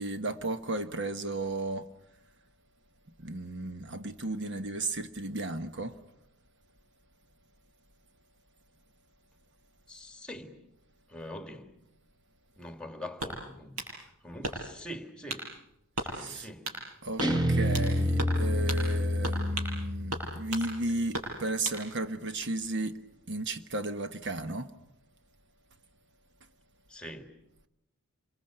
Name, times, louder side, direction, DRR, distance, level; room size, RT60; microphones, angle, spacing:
voice 1, 0.0-1.9 3.2-6.0 16.1-16.5 17.0-23.0 23.3-24.7, right 2 dB, 50° right, 1.1 m, -34 dB
voice 2, 9.9-10.6 11.1-11.7 12.6-15.5 16.0-16.7 26.9-27.3, left 1 dB, 5° left, 2.1 m, -44 dB
sound 1, 13.2-13.9 14.4-14.8 15.3-15.5 16.0-16.1 16.6-16.8 17.2-17.9 18.2-18.4 18.7-18.8 19.2-19.8 20.1-20.7 21.1-21.8, right 2 dB, 80° right, 7.8 m, -36 dB
Guitar, 17.2-20.4, equal, 20° right, 1.8 m, -28 dB
27.5 x 23.0 x 8.9 m
head